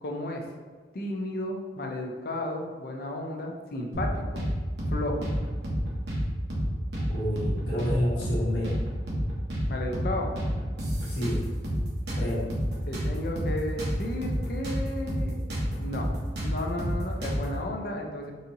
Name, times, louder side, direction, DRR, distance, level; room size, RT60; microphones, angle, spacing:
voice 1, 0.0-0.4 0.9-4.4 4.9-5.3 9.7-10.3 12.9-15.4 15.8-16.1 16.4-18.3, left 1 dB, 55° left, 1 dB, 0.5 m, -33 dB
sound 1, 3.9-4.5 4.8-4.9 5.2-6.2 6.5-6.7 6.9-7.9 8.2-8.4 8.6-9.7 9.9-10.1 10.4-11.8 12.1-14.8 15.1-15.2 15.5-17.5, equal, 70° right, 0.9 m, -30 dB
voice 2, 7.1-8.7 11.0-11.4 12.1-12.5, equal, 80° left, -6 dB, 1.2 m, -29 dB
4.0 x 2.8 x 2.6 m, 1.5 s
head